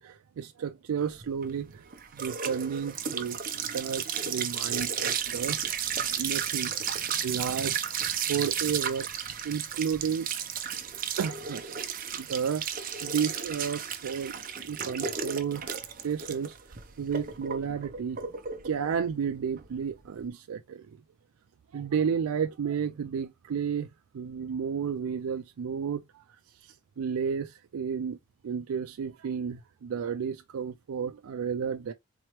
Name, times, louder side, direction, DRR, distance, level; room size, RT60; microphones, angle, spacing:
voice 1, 0.0-5.6 6.0-6.7 7.2-8.0 8.3-9.1 9.4-10.3 11.2-11.7 12.1-12.6 13.0-14.3 14.6-15.7 16.0-16.6 17.0-18.2 18.6-21.0 21.7-28.2 28.4-31.9, right 7 dB, 85° right, 0.4 m, -32 dB
sound 1, 1.2-20.2, right 8 dB, 40° right, 0.6 m, -33 dB
4.3 x 3.0 x 3.0 m
head